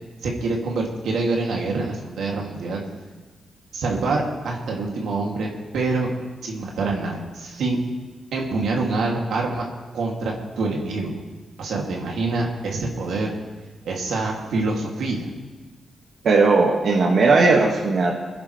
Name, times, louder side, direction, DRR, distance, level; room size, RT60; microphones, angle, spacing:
voice 1, 0.2-2.8 3.7-6.1 6.4-7.8 8.3-9.7 9.9-11.2 11.6-13.3 13.8-15.3, right 3 dB, 85° right, -1 dB, 2.5 m, -26 dB
voice 2, 16.2-18.2, right 3 dB, 65° right, -2 dB, 1.9 m, -17 dB
24.0 x 10.5 x 3.3 m, 1.3 s
cardioid pair, 100°, 0 cm